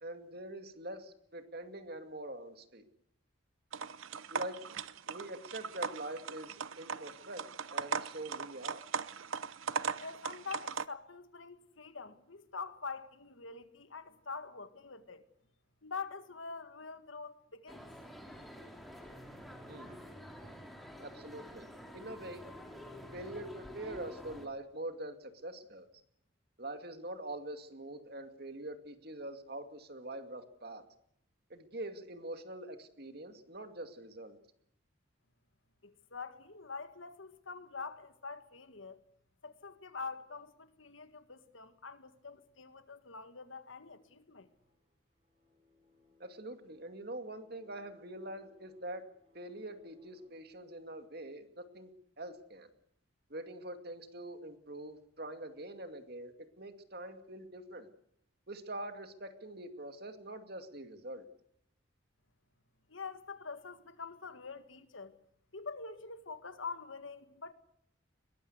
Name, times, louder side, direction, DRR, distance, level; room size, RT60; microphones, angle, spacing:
voice 1, 0.0-2.8 4.3-4.6 5.1-7.4 7.7-8.8 19.7-19.9 21.0-21.7 21.9-22.4 23.1-25.9 26.6-30.8 31.5-34.4 46.2-49.0 49.3-51.9 52.2-52.7 53.3-57.9 58.5-61.2, right 1 dB, 50° right, 2.4 m, -44 dB
sound 1, 3.7-10.8, right 6 dB, 90° right, 0.8 m, -39 dB
voice 2, 10.0-15.2 15.8-17.9 35.8-39.0 39.4-44.5 62.9-65.2 65.5-67.5, left 4 dB, 80° left, 1.8 m, -45 dB
sound 2, 17.7-24.5, equal, ahead, 3.4 m, -49 dB
sound 3, 44.3-50.3, left 4 dB, 30° right, 7.5 m, -66 dB
22.0 x 19.5 x 8.1 m
head